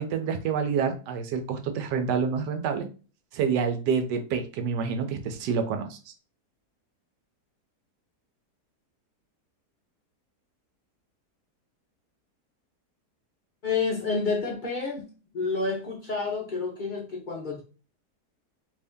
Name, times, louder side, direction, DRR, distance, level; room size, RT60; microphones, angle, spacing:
voice 1, 0.0-2.9 3.3-6.1, right 6 dB, 85° right, 6 dB, 1.2 m, -28 dB
voice 2, 13.6-15.1 15.3-17.6, left 4 dB, 55° left, -1 dB, 0.5 m, -29 dB
3.0 x 2.6 x 3.5 m, 0.34 s
omnidirectional pair, 1.8 m